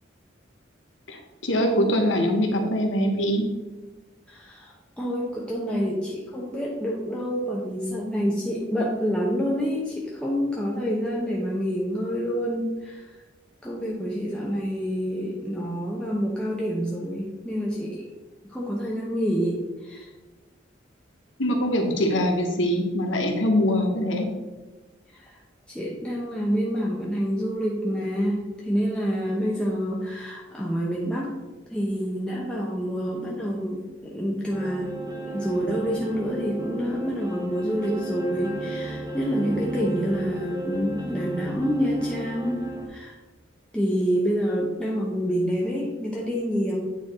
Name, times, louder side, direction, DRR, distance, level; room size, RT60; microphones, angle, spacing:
voice 1, 1.1-3.5 21.4-24.3, equal, 85° left, 4 dB, 1.1 m, -23 dB
voice 2, 4.3-13.1 13.6-18.1 18.4-20.1 25.1-25.4 25.7-31.3 31.7-35.0 35.3-42.6 42.9-43.2 43.7-46.8, equal, 5° left, -4 dB, 0.8 m, -27 dB
sound 1, 34.5-42.9, right 2 dB, 20° right, 1.0 m, -34 dB
8.9 x 4.6 x 3.6 m, 1.2 s
head